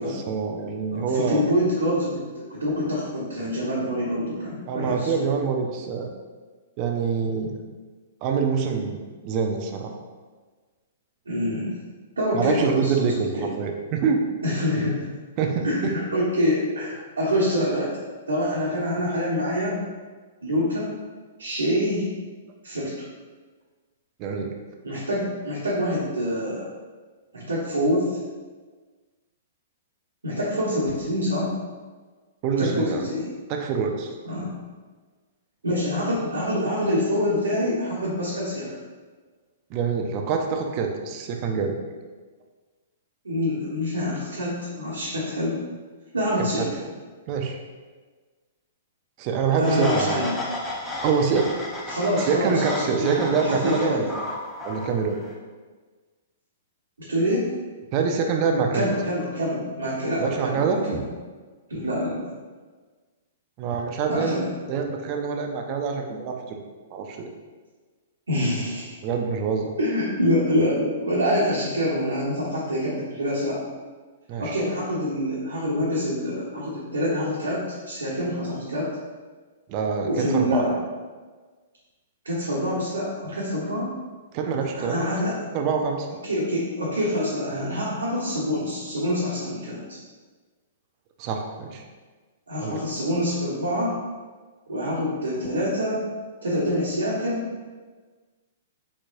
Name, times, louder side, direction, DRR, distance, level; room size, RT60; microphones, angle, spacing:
voice 1, 0.0-1.4 4.7-6.1 6.8-7.6 8.2-9.9 12.3-14.2 15.4-15.9 24.2-24.5 32.4-33.0 33.5-34.1 39.7-41.7 46.6-46.7 47.3-47.6 49.2-50.2 50.7-51.5 52.3-54.3 54.6-55.2 57.9-59.0 60.2-61.0 63.6-64.4 64.7-66.6 66.9-67.3 69.0-69.7 74.3-74.6 79.7-80.6 84.3-85.1 85.5-86.1 91.2-91.8 92.6-92.8, right 5 dB, 40° right, 3 dB, 0.6 m, -25 dB
voice 2, 0.9-5.1 11.2-11.7 12.2-12.9 13.4-13.5 14.4-15.0 15.6-17.9 18.3-19.8 20.4-20.9 21.4-22.1 22.6-22.9 24.8-26.7 27.3-28.1 30.2-31.6 32.6-33.2 34.2-34.5 35.6-38.7 43.2-45.5 46.1-46.7 49.6-50.4 51.9-54.0 57.1-57.5 58.7-61.0 61.7-62.3 64.1-64.5 68.3-69.0 69.8-73.6 74.4-78.9 80.0-80.8 82.2-83.9 84.7-85.4 86.2-90.0 92.5-93.9 94.7-96.0 96.4-97.5, equal, 85° right, -9 dB, 1.4 m, -26 dB
sound 1, 49.6-55.3, left 1 dB, 10° left, 0.8 m, -33 dB
4.6 x 4.2 x 2.6 m, 1.4 s
figure-of-eight pair, 115°, 0 cm